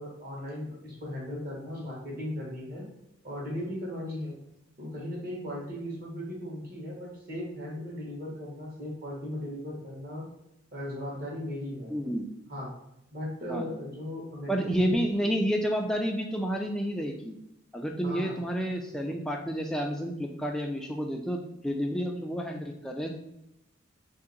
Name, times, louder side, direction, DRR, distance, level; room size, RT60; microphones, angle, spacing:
voice 1, 0.0-2.8 3.2-4.3 4.8-10.2 10.7-11.9 12.5-12.7 13.1-15.4 18.0-18.4, left 1 dB, 45° right, -3 dB, 1.3 m, -37 dB
voice 2, 11.9-12.3 13.5-13.7 14.5-17.4 17.7-23.2, equal, 5° left, 1 dB, 0.3 m, -30 dB
3.4 x 2.8 x 3.8 m, 0.86 s
head